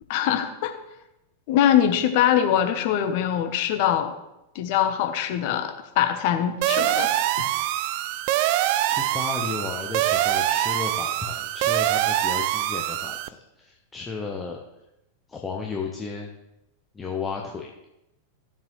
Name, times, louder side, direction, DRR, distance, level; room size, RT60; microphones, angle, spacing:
voice 1, 0.1-0.7 1.5-4.1 4.5-7.1 7.4-7.5, left 10 dB, 50° left, 6 dB, 1.0 m, -23 dB
sound 1, 6.6-13.3, right 14 dB, 45° right, 0.4 m, -24 dB
voice 2, 8.4-14.6 15.3-16.3 16.9-17.7, left 4 dB, 15° left, 0 dB, 1.0 m, -34 dB
14.5 x 7.2 x 3.2 m, 0.89 s
figure-of-eight pair, 90°, 0 cm